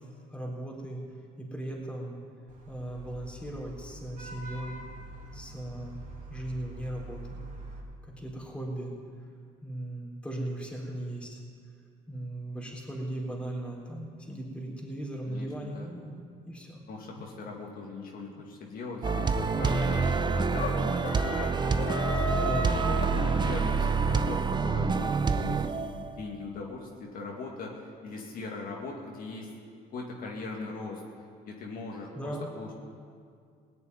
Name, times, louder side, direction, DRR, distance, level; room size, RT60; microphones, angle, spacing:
voice 1, 0.3-1.0 1.4-2.2 2.7-4.8 5.3-6.0 6.3-7.4 8.0-8.9 9.6-11.4 12.1-16.8 19.6-20.0 22.1-22.8 23.1-23.4 32.1-32.5, right 1 dB, 5° left, -3 dB, 3.7 m, -37 dB
Vehicle horn car horn honking / Traffic noise roadway noise, 2.5-7.8, right 2 dB, 50° right, 3.0 m, -45 dB
voice 2, 15.3-15.9 16.9-21.0 22.9-29.5 29.9-31.0 31.4-32.7, left 3 dB, 60° left, -1 dB, 2.1 m, -40 dB
sound 1, 19.0-23.8, left 3 dB, 75° left, 2.4 m, -35 dB
sound 2, 19.0-26.2, right 5 dB, 25° right, 0.7 m, -27 dB
18.0 x 6.8 x 9.7 m, 2.2 s
cardioid pair, 110°, 17 cm